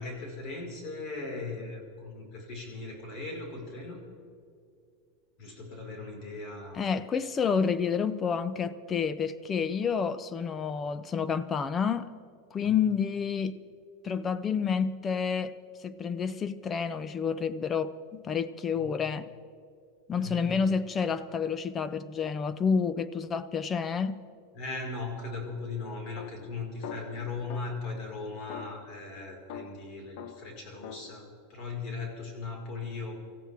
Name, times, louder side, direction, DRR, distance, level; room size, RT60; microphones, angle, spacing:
voice 1, 0.0-4.0 5.4-6.8 12.6-12.8 18.7-18.9 20.1-20.8 24.5-33.1, left 3 dB, 45° left, 4.9 m, -38 dB
voice 2, 6.8-12.1 12.5-13.6 14.0-15.6 15.8-19.3 20.1-24.2, left 6 dB, 20° left, 0.7 m, -29 dB
sound 1, 26.1-28.0 28.5-31.1, left 8 dB, 60° left, 0.9 m, -44 dB
25.5 x 15.0 x 3.6 m
supercardioid pair, 140°, 0 cm